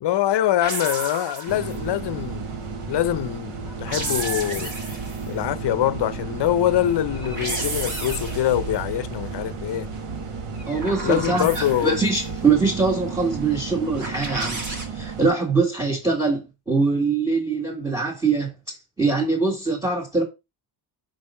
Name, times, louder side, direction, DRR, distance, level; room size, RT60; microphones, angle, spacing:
voice 1, 0.0-2.5 2.8-4.7 5.3-9.9 11.0-12.0, left 12 dB, 55° left, 0.6 m, -24 dB
sound 1, 0.6-1.9 3.6-5.3 7.1-8.7 10.5-12.1 14.0-14.9, right 2 dB, 35° right, 1.8 m, -32 dB
sound 2, 1.5-15.3, right 4 dB, 85° right, 1.7 m, -33 dB
voice 2, 10.6-14.6 14.9-20.2, right 4 dB, 10° right, 1.6 m, -23 dB
5.6 x 5.3 x 5.3 m
wide cardioid pair, 175°, 49 cm